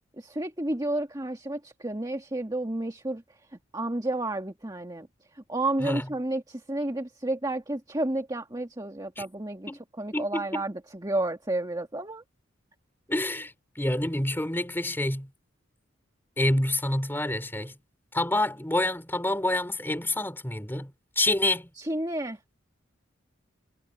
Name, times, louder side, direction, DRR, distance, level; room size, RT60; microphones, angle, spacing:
voice 1, 0.2-9.7 10.0-12.2 21.8-22.4, right 1 dB, 20° right, 1.8 m, -31 dB
voice 2, 10.1-10.6 13.1-15.3 16.4-17.8 18.1-21.7, left 1 dB, 10° left, 3.5 m, -28 dB
head